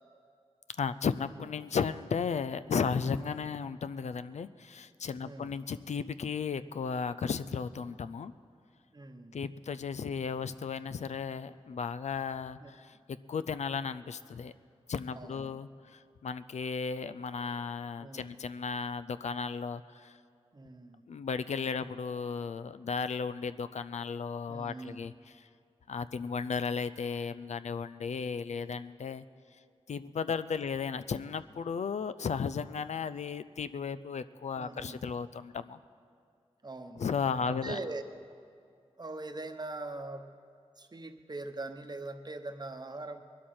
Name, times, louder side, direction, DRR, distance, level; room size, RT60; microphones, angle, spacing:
voice 1, 0.8-8.3 9.3-12.9 13.3-14.5 14.9-20.1 21.1-25.4 25.9-29.2 29.9-35.8 37.0-37.8, left 6 dB, 85° left, 14 dB, 0.4 m, -35 dB
voice 2, 5.2-5.5 8.9-9.4 12.6-12.7 15.1-15.6 18.0-18.3 20.5-21.0 24.5-25.0 34.6-35.0 36.6-37.0 37.5-38.0 39.0-40.2 40.8-43.2, right 2 dB, 35° right, 7 dB, 0.9 m, -41 dB
21.5 x 12.5 x 4.3 m, 2.3 s
wide cardioid pair, 80°, 11 cm